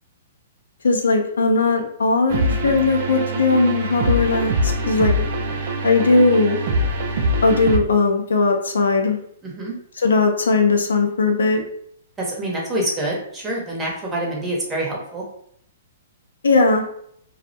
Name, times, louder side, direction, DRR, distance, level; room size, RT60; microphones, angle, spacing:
voice 1, 0.8-5.1 5.8-6.6 7.4-9.2 10.0-11.6 16.4-16.8, left 3 dB, 85° left, 3 dB, 0.4 m, -18 dB
sound 1, 2.3-7.8, right 1 dB, 55° right, 0.4 m, -23 dB
voice 2, 9.4-9.7 12.2-15.2, right 1 dB, 15° right, -3 dB, 0.8 m, -26 dB
2.3 x 2.0 x 2.7 m, 0.67 s
hypercardioid pair, 130°, 0 cm